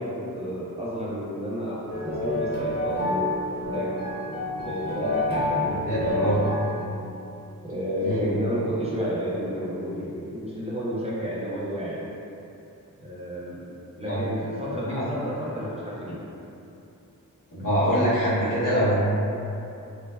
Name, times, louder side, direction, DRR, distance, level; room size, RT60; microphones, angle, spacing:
voice 1, 0.0-3.3 3.7-3.9 4.6-6.5 7.6-12.0 13.0-16.2, equal, 20° right, -8 dB, 0.4 m, -31 dB
sound 1, 1.9-6.8, left 1 dB, 30° left, 0.6 m, -28 dB
voice 2, 5.8-6.4 8.0-8.2 14.1-14.2 14.9-15.0 17.5-19.0, equal, 70° left, -11 dB, 1.0 m, -24 dB
2.6 x 2.1 x 2.2 m, 2.8 s
wide cardioid pair, 90°, 33 cm